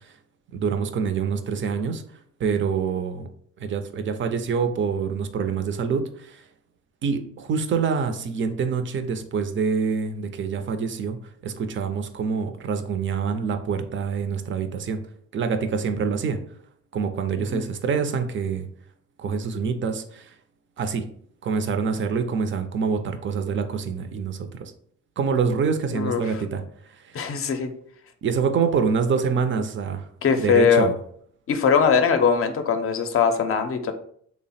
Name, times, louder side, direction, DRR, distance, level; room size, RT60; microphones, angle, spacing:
voice 1, 0.5-2.0 2.4-3.3 3.6-6.4 7.0-11.2 11.4-15.0 15.3-16.4 16.9-18.7 19.2-20.3 20.8-21.1 21.4-24.7 25.2-26.6 28.2-30.1 30.3-30.9, right 5 dB, 40° right, 8 dB, 0.5 m, -26 dB
voice 2, 25.9-26.4 27.1-27.7 30.2-30.9 31.5-33.9, left 6 dB, 45° left, 7 dB, 0.5 m, -21 dB
3.3 x 2.0 x 4.1 m, 0.62 s
cardioid pair, 90°, 30 cm